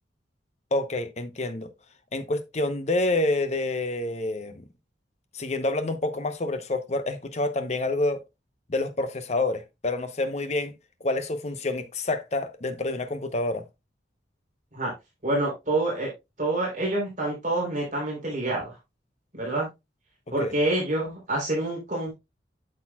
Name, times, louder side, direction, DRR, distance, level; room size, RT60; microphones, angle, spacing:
voice 1, 0.7-1.7 2.1-4.6 5.3-8.2 8.7-10.7 11.0-13.6 20.4-20.6, left 2 dB, 35° left, 0.8 m, -28 dB
voice 2, 15.2-16.1 16.4-18.7 19.3-19.7 20.3-22.1, right 2 dB, 45° right, 3.6 m, -27 dB
8.5 x 6.5 x 2.3 m
head